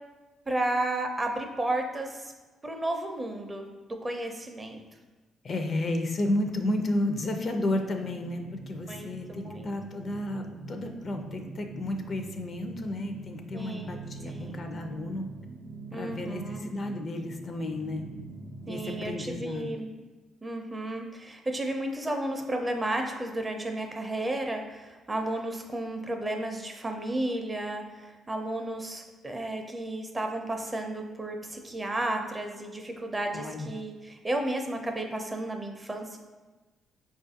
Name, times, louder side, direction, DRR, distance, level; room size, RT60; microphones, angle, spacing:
voice 1, 0.5-2.3 2.6-4.8 8.9-9.7 13.5-14.7 15.9-16.7 18.7-19.9 20.4-36.2, right 1 dB, 20° right, 3 dB, 0.5 m, -33 dB
voice 2, 5.4-15.3 15.9-18.1 18.7-19.7 33.3-33.7, left 1 dB, 45° left, 4 dB, 0.4 m, -32 dB
sound 1, 8.0-19.3, right 3 dB, 75° right, 0.4 m, -44 dB
4.9 x 2.4 x 2.7 m, 1.2 s
cardioid pair, 90°, 0 cm